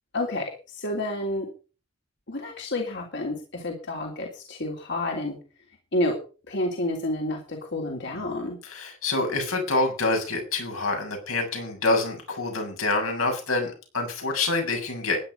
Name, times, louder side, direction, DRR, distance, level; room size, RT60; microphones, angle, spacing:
voice 1, 0.1-1.5 2.3-5.4 5.9-6.2 6.5-8.6, left 1 dB, 55° left, 1 dB, 3.5 m, -29 dB
voice 2, 8.6-15.2, left 2 dB, 80° left, 3 dB, 7.1 m, -26 dB
15.5 x 11.0 x 5.6 m, 0.36 s
head